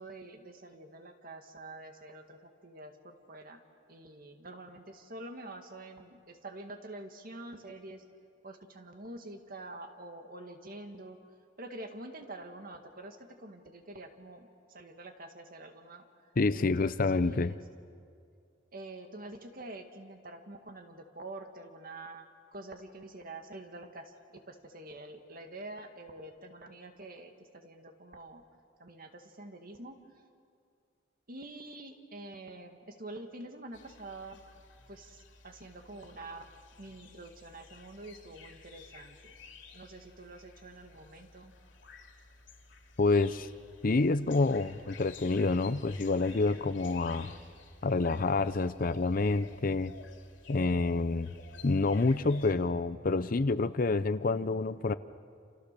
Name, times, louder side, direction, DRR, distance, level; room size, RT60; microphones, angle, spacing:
voice 1, 0.0-3.6 3.9-8.0 8.4-11.2 11.6-16.1 16.5-17.6 18.7-28.4 28.8-30.0 31.3-34.4 34.9-36.5 36.8-39.3 39.7-41.5, right 2 dB, 50° right, 5 dB, 2.0 m, -47 dB
voice 2, 16.4-17.5 43.0-43.5 43.8-47.4 47.8-49.9 50.5-51.3 51.6-54.9, left 3 dB, 45° left, 14 dB, 0.6 m, -28 dB
sound 1, 33.7-52.6, left 4 dB, 70° left, 3.0 m, -53 dB
28.5 x 28.5 x 6.8 m, 2.2 s
head